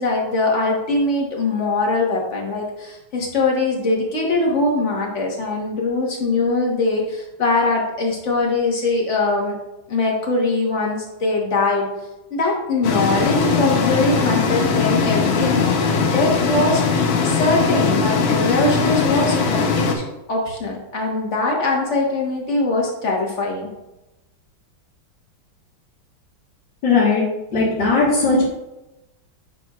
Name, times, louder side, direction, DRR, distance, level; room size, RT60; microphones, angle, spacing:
voice 1, 0.0-9.6 9.9-11.9 12.3-20.0 20.3-23.7, left 2 dB, 40° left, -1 dB, 1.5 m, -22 dB
sound 1, 12.8-20.0, left 5 dB, 80° left, 1.6 m, -20 dB
voice 2, 26.8-27.2 27.5-28.4, left 3 dB, 60° left, -9 dB, 2.2 m, -17 dB
9.1 x 5.8 x 2.4 m, 0.97 s
omnidirectional pair, 2.2 m